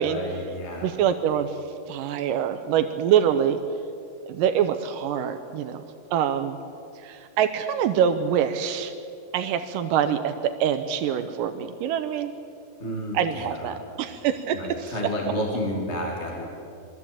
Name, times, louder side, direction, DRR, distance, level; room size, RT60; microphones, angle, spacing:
voice 1, 0.0-0.9 12.8-13.8 14.5-16.4, equal, 20° left, -1 dB, 2.3 m, -31 dB
voice 2, 0.8-1.6 1.9-3.6 4.3-5.8 6.1-6.6 7.0-8.9 9.3-12.3 13.1-15.1, right 9 dB, 85° right, 8 dB, 2.4 m, -25 dB
22.0 x 14.0 x 8.7 m, 2.5 s
omnidirectional pair, 3.9 m